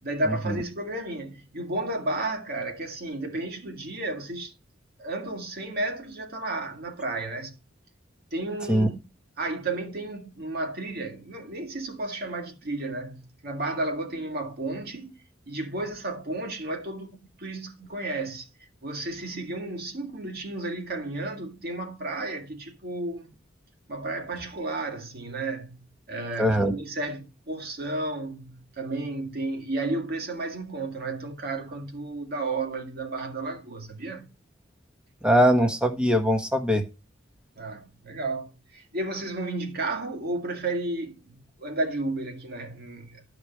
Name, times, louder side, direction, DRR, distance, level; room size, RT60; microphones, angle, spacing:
voice 1, 0.0-4.5 5.0-7.6 8.3-9.0 9.4-15.2 15.5-18.5 18.8-23.3 23.9-25.8 26.1-34.3 37.6-43.2, right 2 dB, 50° right, 2.1 m, -32 dB
voice 2, 26.4-26.7 35.2-36.8, equal, 5° right, 1.3 m, -21 dB
12.0 x 5.0 x 4.6 m
head